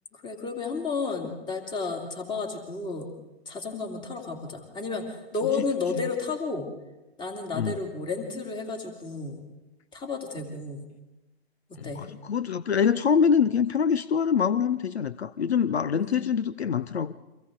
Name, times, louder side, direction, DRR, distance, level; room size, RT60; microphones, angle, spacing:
voice 1, 0.1-3.1 3.5-6.7 7.2-9.4 9.9-10.9 11.7-12.0 15.9-16.3, left 4 dB, 15° left, 4 dB, 2.6 m, -32 dB
voice 2, 11.8-17.1, left 7 dB, 75° left, 16 dB, 0.8 m, -25 dB
30.0 x 24.5 x 3.8 m, 1.1 s
hypercardioid pair, 130°, 32 cm